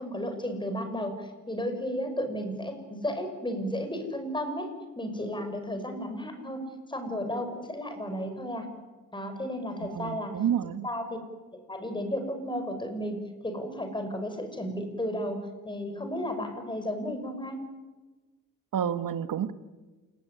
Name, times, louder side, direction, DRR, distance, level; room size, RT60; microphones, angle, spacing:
voice 1, 0.0-8.7 9.1-10.4 10.8-11.2 11.5-17.6, equal, 15° left, 7 dB, 5.9 m, -33 dB
voice 2, 9.8-10.9 18.7-19.5, right 9 dB, 70° right, 11 dB, 1.8 m, -29 dB
28.5 x 19.5 x 9.9 m, 1.3 s
cardioid pair, 110°, 34 cm